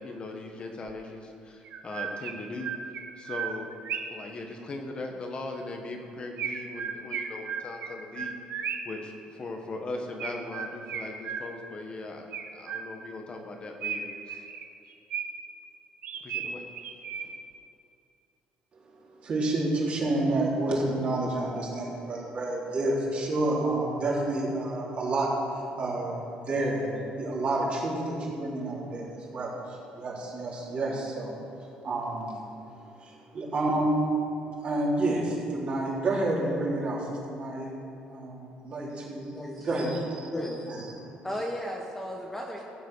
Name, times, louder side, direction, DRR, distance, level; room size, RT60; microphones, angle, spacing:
voice 1, 0.0-2.7 3.2-3.7 4.1-8.3 8.8-12.3 12.5-14.4 16.2-16.6 17.2-17.3, left 2 dB, 35° left, 3 dB, 1.3 m, -39 dB
Chirp tweet, 0.9-1.0 1.7-4.3 6.4-9.0 10.2-11.8 12.3-13.2 13.8-15.6 16.0-17.5, right 7 dB, 60° right, 1.0 m, -36 dB
voice 2, 19.2-31.3 31.6-32.4 33.0-34.0 34.6-37.8 38.1-39.3 39.6-40.3 40.7-40.8, right 2 dB, 40° right, -4 dB, 3.6 m, -29 dB
voice 3, 39.3-39.9 40.3-40.9 41.2-42.6, left 1 dB, 10° left, 0 dB, 1.1 m, -35 dB
15.0 x 8.0 x 6.3 m, 2.6 s
cardioid pair, 130°, 3 cm